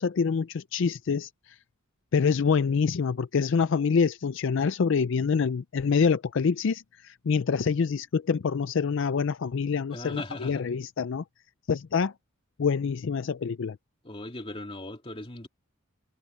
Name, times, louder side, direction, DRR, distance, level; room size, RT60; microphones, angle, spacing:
voice 1, 0.0-1.6 2.1-11.2 11.7-12.1 12.6-13.8, left 5 dB, 60° left, 0.4 m, -26 dB
voice 2, 9.9-10.6 14.0-15.5, left 1 dB, 25° left, 2.2 m, -38 dB
head